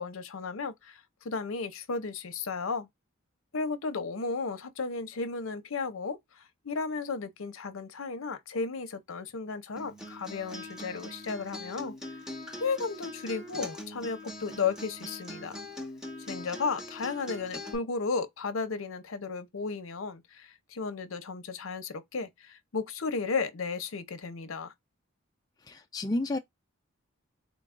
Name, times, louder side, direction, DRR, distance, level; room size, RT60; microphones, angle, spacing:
voice 1, 0.0-2.9 3.5-11.9 12.6-15.6 16.3-24.7, left 4 dB, 75° left, 0.7 m, -34 dB
Acoustic guitar, 9.8-17.7, left 1 dB, 5° right, 0.8 m, -42 dB
voice 2, 25.6-26.4, left 2 dB, 20° left, 0.3 m, -31 dB
3.8 x 2.3 x 3.6 m
head